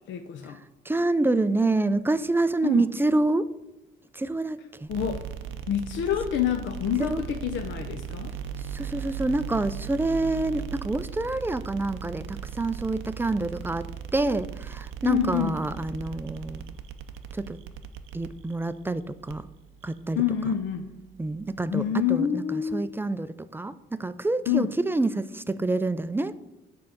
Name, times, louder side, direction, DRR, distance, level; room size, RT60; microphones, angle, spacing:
voice 1, 0.1-0.6 2.6-2.9 4.9-5.3 5.7-8.3 15.0-15.6 20.2-20.9 21.7-22.9 24.5-24.7, left 9 dB, 70° left, 7 dB, 0.6 m, -27 dB
voice 2, 0.9-3.5 4.1-4.9 7.1-7.2 8.7-13.9 14.1-16.7 17.3-17.6 18.1-19.5 19.8-20.2 21.2-21.8 22.1-26.3, right 2 dB, 10° right, 13 dB, 0.3 m, -27 dB
sound 1, 4.8-21.9, right 8 dB, 80° right, 0.6 m, -39 dB
7.4 x 3.8 x 5.8 m, 0.93 s
cardioid pair, 90°, 20 cm